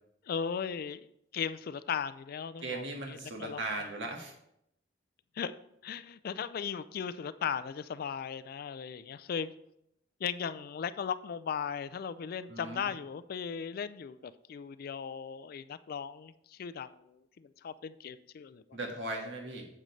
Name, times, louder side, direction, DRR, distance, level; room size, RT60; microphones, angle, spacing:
voice 1, 0.3-1.0 1.3-3.6 5.4-5.5 5.8-9.5 10.2-18.8, left 7 dB, 50° left, 14 dB, 0.3 m, -37 dB
voice 2, 2.6-4.3 12.5-12.8 18.7-19.6, right 2 dB, 70° right, 1 dB, 1.6 m, -38 dB
9.0 x 7.7 x 3.2 m, 0.77 s
head